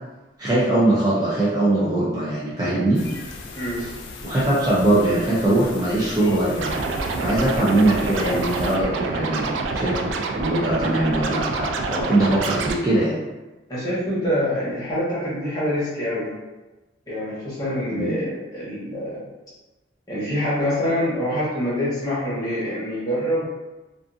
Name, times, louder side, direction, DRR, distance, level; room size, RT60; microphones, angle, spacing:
voice 1, 0.4-3.0 3.8-3.9 4.2-6.7 7.2-10.0 10.4-13.2 17.9-18.1, right 1 dB, 20° right, -8 dB, 0.4 m, -21 dB
sound 1, 2.9-8.8, left 3 dB, 80° left, 0.4 m, -38 dB
voice 2, 3.5-3.9 13.7-16.3 17.1-19.2 20.1-23.4, equal, 20° left, -9 dB, 1.0 m, -25 dB
Scratching (performance technique), 6.6-12.8, right 3 dB, 90° right, 0.3 m, -27 dB
2.5 x 2.4 x 2.5 m, 1.1 s
head